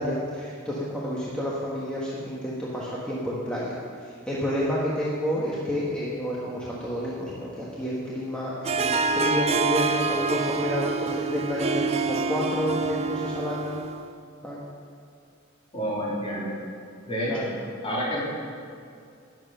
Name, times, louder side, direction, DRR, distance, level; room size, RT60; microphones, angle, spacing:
voice 1, 0.0-13.8 14.4-14.6 17.3-17.5, equal, 5° left, -7 dB, 1.4 m, -30 dB
Harp, 8.6-14.1, right 4 dB, 30° right, 0.4 m, -27 dB
voice 2, 15.7-16.5 17.1-17.5 17.8-18.2, equal, 25° left, -6 dB, 3.2 m, -28 dB
12.0 x 9.3 x 5.6 m, 2.4 s
head